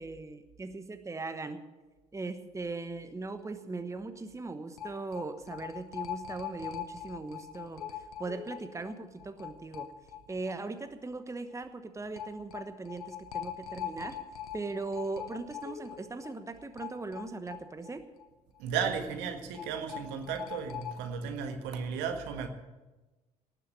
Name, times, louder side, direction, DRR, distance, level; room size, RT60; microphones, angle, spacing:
voice 1, 0.0-1.6 2.1-9.9 10.3-14.2 14.5-18.0, right 3 dB, 15° right, 9 dB, 1.1 m, -39 dB
sound 1, 3.4-3.5 3.8-3.9 4.8-10.5 10.8-10.9 12.2-18.3 18.6-18.7 19.5-21.0, left 9 dB, 80° left, 1.0 m, -42 dB
voice 2, 18.6-22.5, right 6 dB, 65° right, 6 dB, 1.6 m, -34 dB
18.5 x 7.0 x 8.4 m, 1.2 s
figure-of-eight pair, 50°, 19 cm